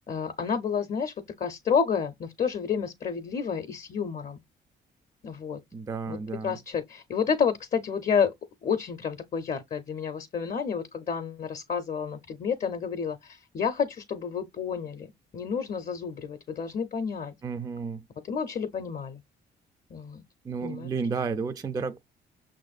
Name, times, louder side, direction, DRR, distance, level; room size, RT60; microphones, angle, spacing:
voice 1, 0.1-4.4 5.2-5.6 6.1-6.2 6.4-8.3 8.6-17.3 18.2-19.2 19.9-20.2 20.6-20.9, left 6 dB, 40° left, 0.6 m, -30 dB
voice 2, 5.7-6.6 17.4-18.0 20.4-22.0, right 5 dB, 20° right, 0.3 m, -32 dB
5.8 x 2.5 x 2.3 m
cardioid pair, 90°, 20 cm